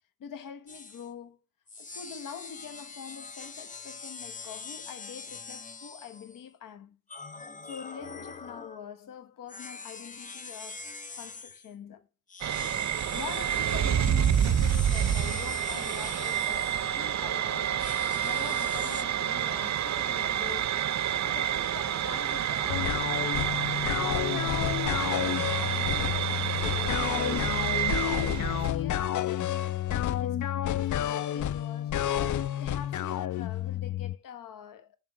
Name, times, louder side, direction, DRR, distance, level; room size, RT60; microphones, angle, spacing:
voice 1, 0.2-1.4 1.8-7.0 7.6-10.9 11.2-12.1 12.8-20.8 21.2-27.5 27.8-32.0 32.6-35.0, left 8 dB, 90° left, 1.0 m, -45 dB
sound 1, 0.7-1.1 1.7-6.4 7.1-8.9 9.5-11.7 12.3-17.2 17.8-19.0, left 4 dB, 25° left, 0.8 m, -43 dB
sound 2, 12.4-28.7, right 10 dB, 60° right, 0.6 m, -29 dB
sound 3, 22.7-34.1, left 11 dB, 65° left, 0.5 m, -30 dB
7.3 x 3.4 x 6.0 m
cardioid pair, 75°, 32 cm